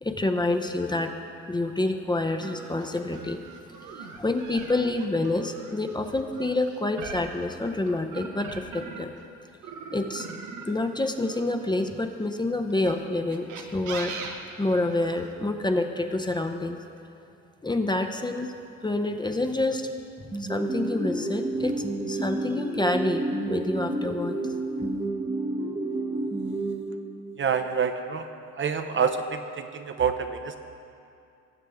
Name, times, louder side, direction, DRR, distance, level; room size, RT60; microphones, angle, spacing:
voice 1, 0.0-1.1 1.5-3.4 4.0-9.1 9.9-10.3 10.7-14.2 14.6-16.8 17.6-18.5 18.8-19.9 20.2-24.4, left 2 dB, 15° left, 5 dB, 0.6 m, -28 dB
sound 1, 2.4-9.2 9.6-12.0 12.7-15.3, right 5 dB, 80° right, 1.1 m, -41 dB
sound 2, 20.3-27.5, right 2 dB, 15° right, 0.8 m, -30 dB
voice 2, 27.4-28.3 28.6-30.6, right 6 dB, 40° right, 8 dB, 0.6 m, -27 dB
19.0 x 7.4 x 3.5 m, 2.5 s
cardioid pair, 90°, 30 cm